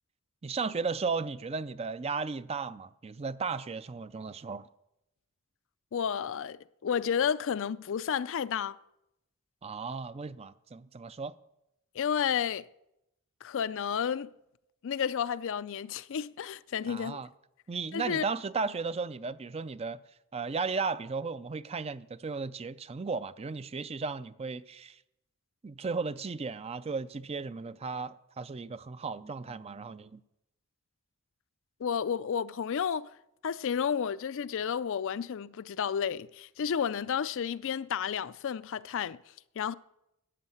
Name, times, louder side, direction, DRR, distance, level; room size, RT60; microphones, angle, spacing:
voice 1, 0.4-4.7 9.6-11.4 16.9-17.3 17.7-20.0 20.3-25.0 25.6-30.2, right 4 dB, 25° right, 0.4 m, -35 dB
voice 2, 5.9-8.8 11.9-12.6 13.4-14.3 14.8-17.2 17.9-18.2 31.8-33.1 33.4-39.2 39.6-39.7, left 7 dB, 60° left, 0.4 m, -31 dB
12.5 x 9.0 x 7.8 m
head